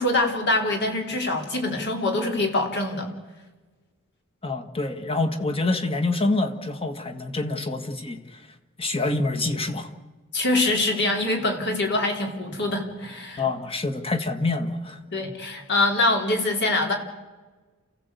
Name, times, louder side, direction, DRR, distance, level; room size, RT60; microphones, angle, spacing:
voice 1, 0.0-3.1 10.3-13.4 15.1-16.9, left 2 dB, 55° left, 3 dB, 3.8 m, -24 dB
voice 2, 4.4-8.2 8.8-9.9 13.4-15.0, left 2 dB, 25° left, 8 dB, 1.7 m, -26 dB
28.5 x 16.0 x 8.3 m, 1.3 s
head